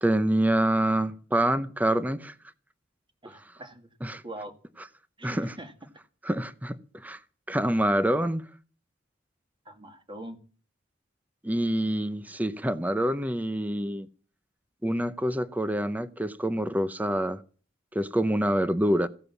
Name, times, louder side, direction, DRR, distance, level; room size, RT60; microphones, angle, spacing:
voice 1, 0.0-2.3 4.0-4.2 5.2-5.6 6.2-7.2 7.5-8.4 11.4-14.1 14.8-17.4 17.9-19.1, right 1 dB, 10° right, 0.7 m, -26 dB
voice 2, 3.2-4.5 5.2-5.7 9.7-10.4, right 1 dB, 25° right, 2.2 m, -43 dB
16.0 x 10.5 x 7.1 m
head